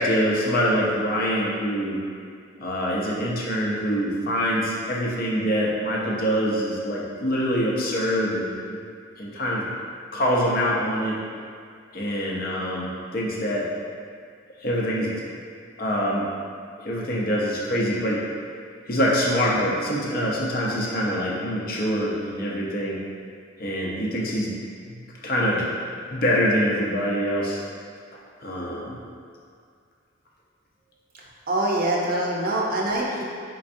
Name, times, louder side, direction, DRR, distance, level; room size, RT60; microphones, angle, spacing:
voice 1, 0.0-2.0 2.6-8.8 9.2-9.6 10.1-11.2 11.9-13.7 14.6-15.1 15.8-16.3 16.8-18.2 18.9-23.0 23.6-24.5 24.9-25.7 26.1-27.6 28.4-29.0, equal, 50° left, -4 dB, 0.6 m, -25 dB
voice 2, 31.5-33.2, right 1 dB, 45° right, -3 dB, 0.6 m, -24 dB
4.3 x 3.8 x 2.6 m, 2.2 s
head